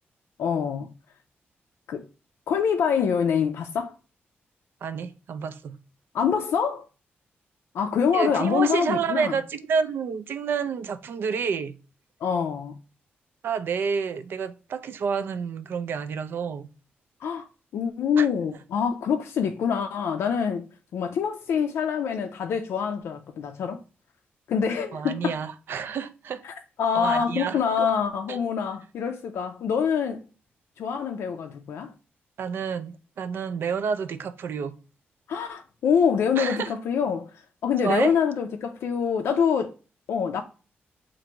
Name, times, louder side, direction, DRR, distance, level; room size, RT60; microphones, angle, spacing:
voice 1, 0.4-0.9 1.9-2.0 2.5-3.9 6.1-6.9 7.7-9.3 12.2-12.8 17.2-17.5 17.7-23.8 24.5-25.4 26.4-26.5 26.8-30.2 30.8-31.9 35.3-37.3 37.6-39.7 40.1-40.4, left 7 dB, 80° left, 0.4 m, -25 dB
voice 2, 4.8-5.8 8.1-11.8 13.4-16.7 18.2-18.3 24.9-26.4 26.9-27.9 28.3-28.4 32.4-34.7 36.4-36.7 37.8-38.2, right 6 dB, 60° right, 0.4 m, -29 dB
2.9 x 2.6 x 4.3 m
wide cardioid pair, 175°, 4 cm